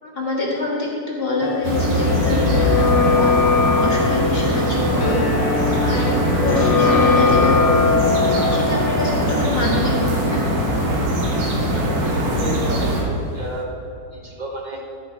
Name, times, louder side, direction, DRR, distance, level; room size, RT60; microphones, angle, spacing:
voice 1, 0.0-3.4 3.8-5.2 5.8-8.0 8.5-10.4, left 2 dB, 35° left, -4 dB, 1.8 m, -25 dB
sound 1, 1.4-13.1 13.4-13.5, left 5 dB, 85° left, 1.6 m, -22 dB
sound 2, 1.6-13.0, right 1 dB, 75° right, 2.0 m, -21 dB
voice 2, 11.7-13.7 14.1-14.8, right 1 dB, 30° right, -2 dB, 1.2 m, -32 dB
13.0 x 4.6 x 4.4 m, 2.6 s
omnidirectional pair, 1.9 m